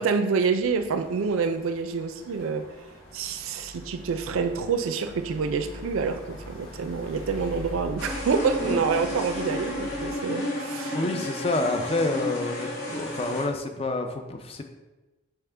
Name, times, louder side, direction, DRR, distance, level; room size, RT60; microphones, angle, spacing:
voice 1, 0.0-2.7 3.1-11.2, right 5 dB, 85° right, 8 dB, 0.4 m, -27 dB
sound 1, 0.5-10.1, left 1 dB, 80° left, 1.3 m, -43 dB
sound 2, 8.0-13.4, left 1 dB, 50° left, 1.1 m, -32 dB
voice 2, 10.9-14.6, left 2 dB, 30° left, 6 dB, 0.3 m, -28 dB
4.4 x 3.5 x 3.3 m, 1.1 s
head